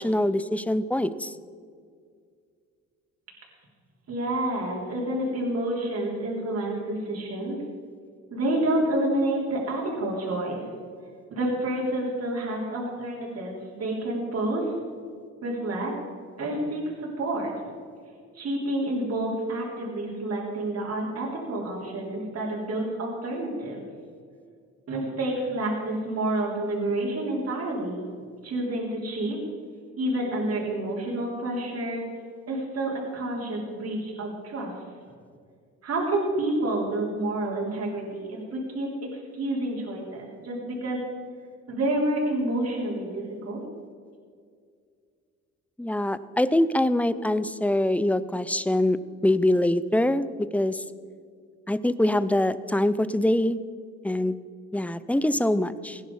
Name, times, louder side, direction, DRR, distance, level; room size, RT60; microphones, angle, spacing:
voice 1, 0.0-1.3 45.8-50.3 50.5-50.8 51.7-53.6 54.0-54.4 54.7-56.0, left 1 dB, 5° left, 15 dB, 0.5 m, -24 dB
voice 2, 4.1-7.6 8.3-10.6 11.3-14.7 15.4-15.9 16.4-17.5 18.3-23.8 24.9-28.0 28.4-29.4 30.0-32.0 32.5-34.7 35.8-41.0 41.7-43.6, right 1 dB, 55° right, -3 dB, 3.7 m, -29 dB
16.5 x 10.5 x 4.8 m, 2.1 s
cardioid pair, 90°, 30 cm